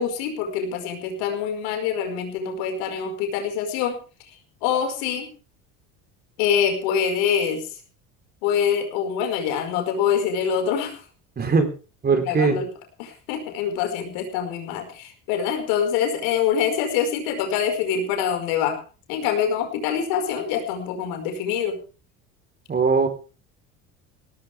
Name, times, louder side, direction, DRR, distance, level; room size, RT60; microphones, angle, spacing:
voice 1, 0.0-4.0 4.6-5.3 6.4-7.7 8.4-11.0 12.1-12.7 13.0-18.8 19.1-21.8, left 7 dB, 85° left, 5 dB, 5.2 m, -25 dB
voice 2, 11.4-11.7 12.0-12.6 22.7-23.1, right 4 dB, 30° right, 6 dB, 3.9 m, -20 dB
18.0 x 15.0 x 3.5 m, 0.36 s
supercardioid pair, 110°, 34 cm